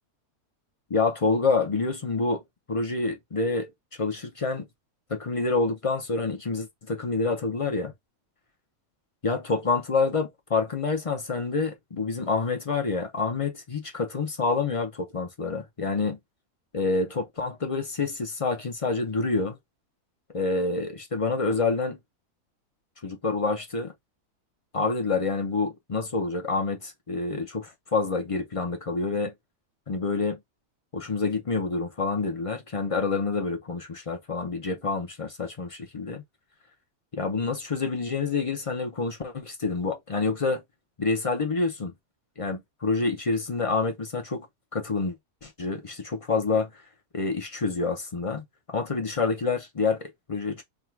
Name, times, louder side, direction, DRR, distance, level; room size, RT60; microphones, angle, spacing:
voice 1, 0.9-2.4 2.7-3.7 4.0-4.7 5.1-7.9 9.2-16.2 16.7-19.6 20.3-22.0 23.0-23.9 24.7-29.3 29.9-30.4 30.9-36.2 37.1-40.6 41.0-41.9 42.4-44.5 44.7-45.2 45.4-46.8 47.1-50.6, left 4 dB, 40° left, 0.4 m, -27 dB
3.6 x 2.3 x 4.5 m
omnidirectional pair, 1.6 m